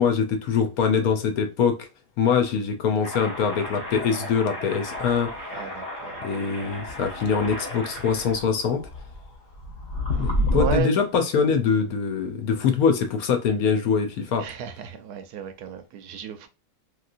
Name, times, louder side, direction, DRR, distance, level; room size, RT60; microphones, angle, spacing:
voice 1, 0.0-1.9 2.2-5.4 6.2-8.9 10.2-14.5, left 6 dB, 65° left, 1.0 m, -23 dB
sound 1, 3.0-10.8, left 1 dB, 45° left, 1.1 m, -31 dB
voice 2, 5.5-6.2 10.1-10.9 14.4-16.5, right 8 dB, 70° right, 1.0 m, -33 dB
3.1 x 2.8 x 2.5 m
omnidirectional pair, 1.9 m